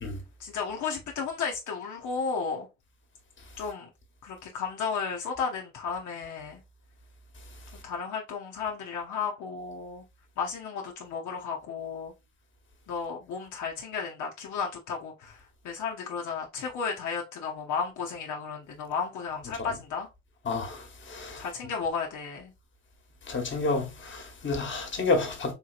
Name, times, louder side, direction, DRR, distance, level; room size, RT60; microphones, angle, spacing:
voice 1, 0.4-2.7 3.6-3.9 4.2-6.6 7.8-10.0 10.4-12.1 12.9-20.1 21.4-22.5, left 5 dB, 75° left, 0.8 m, -33 dB
voice 2, 20.5-21.4 23.3-25.5, left 3 dB, 40° left, 1.2 m, -30 dB
3.7 x 2.8 x 2.4 m
cardioid pair, 90°, 30 cm